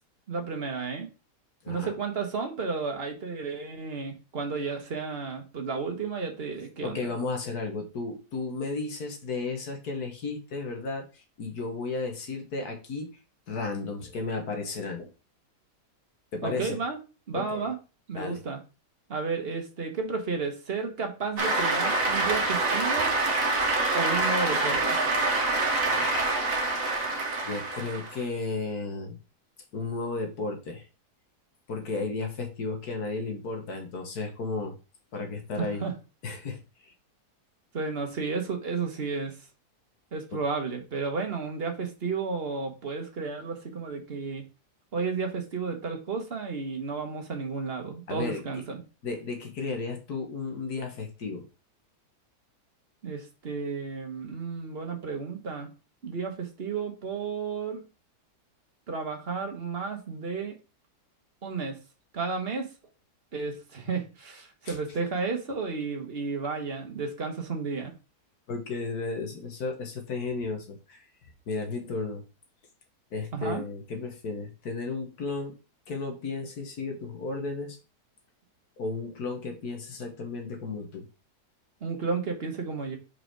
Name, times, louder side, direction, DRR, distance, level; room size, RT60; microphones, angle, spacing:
voice 1, 0.3-1.1 1.7-7.1 16.4-17.0 17.3-17.8 18.1-18.6 19.1-23.1 23.9-25.0 35.6-35.9 37.7-39.4 40.1-44.4 44.9-48.8 53.0-55.7 56.0-57.8 58.9-60.6 61.4-61.8 62.1-62.7 63.3-67.9 73.3-73.6 81.8-83.0, right 4 dB, 40° right, 1.4 m, -32 dB
voice 2, 6.8-13.1 13.5-15.1 16.3-16.8 17.3-17.7 18.1-18.4 25.9-26.4 27.4-29.2 29.7-30.9 31.7-34.8 35.1-35.8 36.2-36.9 40.3-40.4 48.1-48.4 49.0-51.5 64.6-64.8 68.5-71.1 71.5-72.2 73.1-75.6 75.9-77.8 78.8-81.1, left 3 dB, 70° left, 1.9 m, -34 dB
Cheering / Applause, 21.4-28.2, right 2 dB, 55° right, 1.6 m, -26 dB
5.0 x 4.8 x 4.6 m
omnidirectional pair, 1.7 m